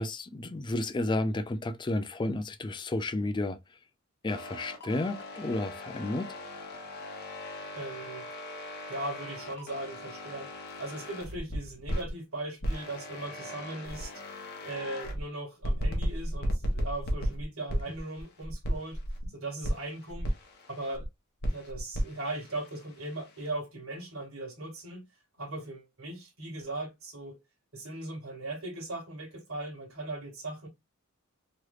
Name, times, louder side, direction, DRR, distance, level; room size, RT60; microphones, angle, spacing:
voice 1, 0.0-3.6 4.2-6.3, left 2 dB, 20° left, 0.4 m, -32 dB
sound 1, 4.3-12.1 12.6-15.2 15.6-19.3 19.6-21.1 21.4-23.5, equal, 50° left, 0.9 m, -36 dB
voice 2, 7.7-8.3 8.9-10.5 10.8-19.0 19.3-20.3 20.7-21.1 21.5-25.0 25.4-27.4 27.7-30.7, right 2 dB, 85° right, 1.8 m, -39 dB
3.2 x 3.1 x 2.3 m
head